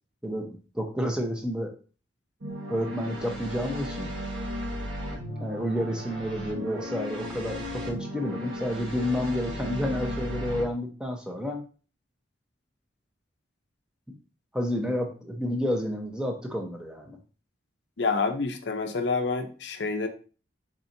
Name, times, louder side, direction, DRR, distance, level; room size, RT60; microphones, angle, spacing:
voice 1, 0.2-1.7 2.7-4.1 5.4-11.6 14.5-17.2, equal, 5° right, 2 dB, 0.7 m, -30 dB
sound 1, 2.4-10.6, equal, 80° right, 1.5 m, -35 dB
voice 2, 18.0-20.1, left 4 dB, 60° left, 5 dB, 0.6 m, -28 dB
4.3 x 4.3 x 2.6 m, 0.37 s
head